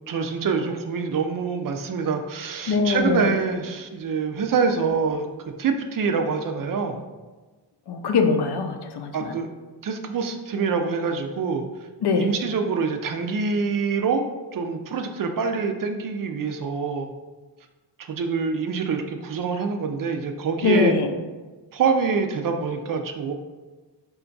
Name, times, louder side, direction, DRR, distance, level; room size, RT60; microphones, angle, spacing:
voice 1, 0.1-5.3 5.6-7.0 9.1-9.5 9.8-11.6 12.1-14.2 14.5-17.1 18.0-20.9 21.7-23.3, right 5 dB, 50° right, 5 dB, 0.5 m, -25 dB
voice 2, 2.7-3.3 7.9-9.3 12.0-12.3 20.6-21.1, left 4 dB, 65° left, 5 dB, 0.6 m, -22 dB
4.3 x 2.3 x 3.8 m, 1.3 s
cardioid pair, 90°, 43 cm